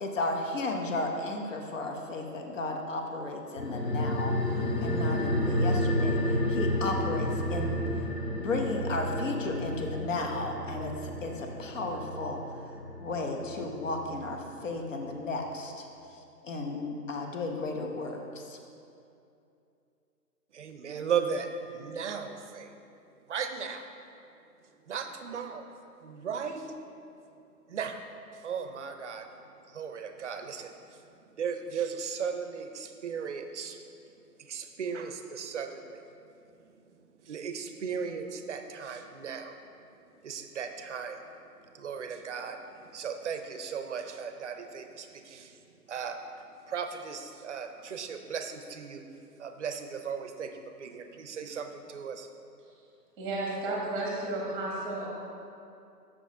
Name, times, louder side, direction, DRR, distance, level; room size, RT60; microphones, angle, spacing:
voice 1, 0.0-4.4 4.8-7.8 8.4-12.4 13.0-18.6, left 2 dB, 50° left, 3 dB, 1.0 m, -34 dB
sound 1, 3.6-14.4 14.7-14.8, left 1 dB, 90° left, 1.3 m, -31 dB
voice 2, 20.5-22.7 23.3-23.9 24.9-25.7 26.0-26.7 27.7-28.0 28.4-29.3 29.7-30.7 31.4-33.8 34.5-36.0 37.3-39.6 40.2-41.2 41.7-42.6 42.9-45.5 45.9-49.0 49.4-50.5 50.8-52.3, right 6 dB, 50° right, 7 dB, 0.6 m, -36 dB
voice 3, 53.2-55.1, right 2 dB, 10° right, -3 dB, 0.9 m, -33 dB
7.8 x 6.4 x 3.7 m, 2.6 s
hypercardioid pair, 150°, 48 cm